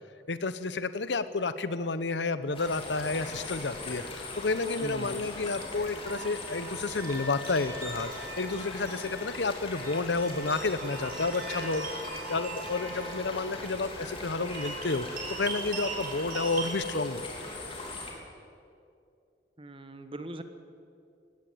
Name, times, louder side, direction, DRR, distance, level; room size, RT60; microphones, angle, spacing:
voice 1, 0.3-17.4, left 3 dB, 80° left, 13 dB, 0.9 m, -31 dB
sound 1, 2.5-18.1, left 2 dB, 30° left, 3.5 m, -40 dB
voice 2, 4.8-5.2 19.6-20.4, right 1 dB, 30° right, 9 dB, 1.3 m, -40 dB
sound 2, 6.0-16.9, right 3 dB, 55° right, 6.7 m, -41 dB
18.0 x 17.0 x 8.7 m, 2.4 s
head